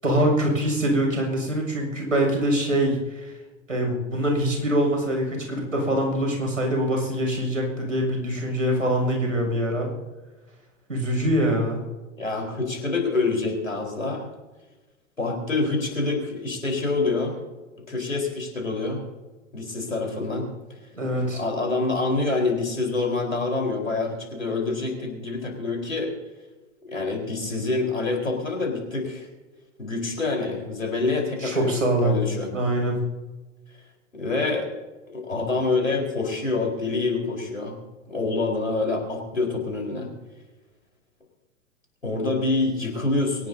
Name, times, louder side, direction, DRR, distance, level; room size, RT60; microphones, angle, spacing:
voice 1, 0.0-3.3 3.7-9.9 10.9-11.8 20.9-21.4 31.4-32.2 32.5-33.0, right 1 dB, 85° right, 1 dB, 6.9 m, -24 dB
voice 2, 12.2-14.3 15.2-17.4 17.9-19.0 19.5-20.8 21.2-26.1 26.8-29.3 29.8-31.7 32.0-32.5 34.1-34.7 35.1-37.8 38.1-40.1 42.0-43.5, left 3 dB, 85° left, 1 dB, 4.6 m, -26 dB
23.5 x 18.5 x 2.8 m, 1.2 s
figure-of-eight pair, 100°, 38 cm